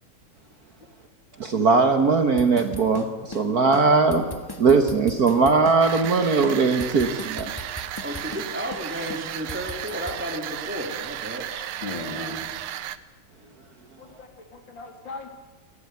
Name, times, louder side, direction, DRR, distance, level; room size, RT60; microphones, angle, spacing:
voice 1, 1.4-4.2 4.6-7.5, right 4 dB, 50° right, 7 dB, 1.7 m, -20 dB
sound 1, 2.4-3.5 3.7-3.9 4.1-5.8 6.0-6.2 6.4-8.5 8.7-8.9 9.1-10.2, left 2 dB, 15° left, 1.0 m, -38 dB
sound 2, 5.8-13.0, right 11 dB, 85° right, 1.7 m, -34 dB
voice 2, 8.0-11.5, equal, 5° right, 2 dB, 3.3 m, -33 dB
voice 3, 11.8-12.4 14.2-15.3, left 3 dB, 60° left, 4 dB, 3.7 m, -36 dB
29.5 x 12.5 x 9.6 m, 1.3 s
omnidirectional pair, 2.3 m